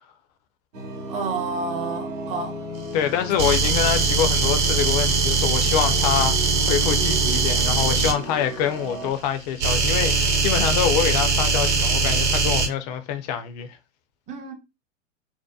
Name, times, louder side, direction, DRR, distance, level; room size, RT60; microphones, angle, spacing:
sound 1, 0.7-9.1, right 1 dB, 75° right, 1.0 m, -35 dB
voice 1, 1.1-2.6 3.4-3.5 14.3-14.5, right 4 dB, 20° right, 0.6 m, -30 dB
voice 2, 2.9-13.8, left 9 dB, 35° left, 0.4 m, -25 dB
sound 2, 3.4-8.1 9.6-12.7, right 4 dB, 45° right, 1.0 m, -21 dB
2.7 x 2.1 x 2.2 m
hypercardioid pair, 105°, 38 cm